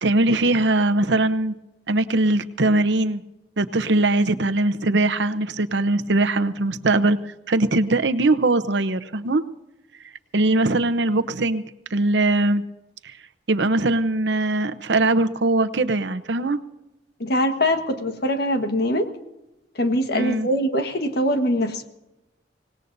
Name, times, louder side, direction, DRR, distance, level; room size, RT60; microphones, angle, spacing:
voice 1, 0.0-1.5 1.9-3.2 3.6-7.2 7.5-9.4 10.3-11.6 11.9-12.6 13.5-16.6 20.1-20.5, right 2 dB, 75° right, 10 dB, 0.8 m, -21 dB
voice 2, 17.2-19.1 19.8-21.8, equal, 60° left, 6 dB, 1.5 m, -22 dB
24.5 x 19.0 x 2.7 m, 0.95 s
head